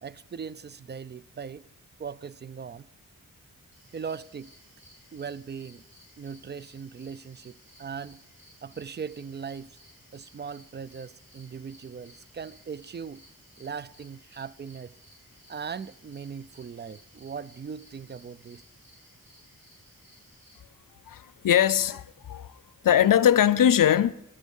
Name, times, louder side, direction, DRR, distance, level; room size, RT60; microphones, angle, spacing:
voice 1, 0.0-1.6 2.0-2.9 3.9-4.5 5.1-5.8 6.2-8.2 8.6-9.8 10.1-13.2 13.6-14.9 15.5-18.6, right 6 dB, 30° right, 0.4 m, -39 dB
sound 1, 3.7-20.6, equal, 90° right, 4.6 m, -58 dB
voice 2, 21.1-22.5 22.8-24.1, left 10 dB, 70° left, 0.5 m, -21 dB
11.0 x 10.5 x 5.4 m
cardioid pair, 55°, 35 cm